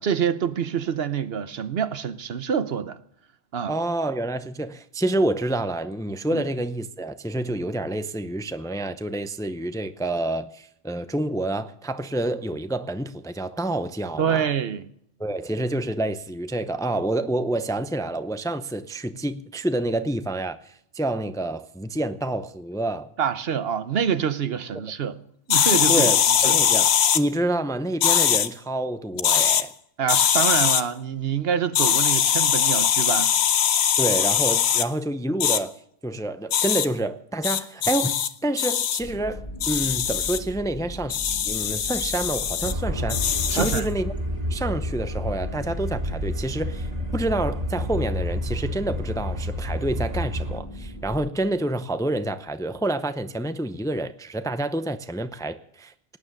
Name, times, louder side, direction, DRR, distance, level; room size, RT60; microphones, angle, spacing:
voice 1, 0.0-3.0 3.5-3.8 6.3-6.4 14.2-14.9 23.2-25.2 25.5-26.6 30.0-33.4 43.5-43.9, right 7 dB, 70° right, 1.1 m, -26 dB
voice 2, 3.7-14.5 15.2-23.1 25.9-29.7 34.0-35.8 36.0-41.2 41.5-44.1 44.5-56.2, right 1 dB, 5° left, 0.5 m, -28 dB
sound 1, 25.5-27.2 28.0-28.5 29.2-29.6 30.1-30.8 31.7-34.9 35.4-35.6 36.5-36.9 37.4-38.3 38.6-39.0 39.6-40.4 41.1-42.7 43.1-43.8, left 9 dB, 90° left, 1.0 m, -21 dB
sound 2, 39.0-51.3, equal, 35° left, 2.2 m, -39 dB
sound 3, 42.6-50.6, left 1 dB, 40° right, 2.2 m, -30 dB
18.0 x 9.7 x 6.5 m
omnidirectional pair, 1.1 m